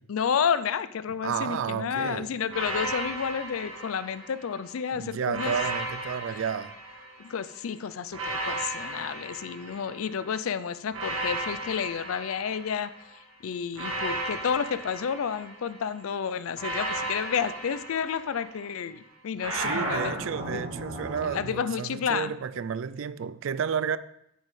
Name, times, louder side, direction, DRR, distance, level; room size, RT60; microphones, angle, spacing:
voice 1, 0.1-5.6 7.2-20.1 20.5-20.6 21.3-22.3, left 7 dB, 85° left, 0.4 m, -31 dB
voice 2, 1.2-2.3 4.9-6.7 19.5-24.0, right 7 dB, 70° right, 0.3 m, -31 dB
sound 1, 2.5-4.6 5.3-7.4 8.1-10.3 10.9-13.1 13.7-15.9 16.6-18.7 19.4-21.4, right 1 dB, 85° right, 1.6 m, -35 dB
9.0 x 7.5 x 3.2 m
head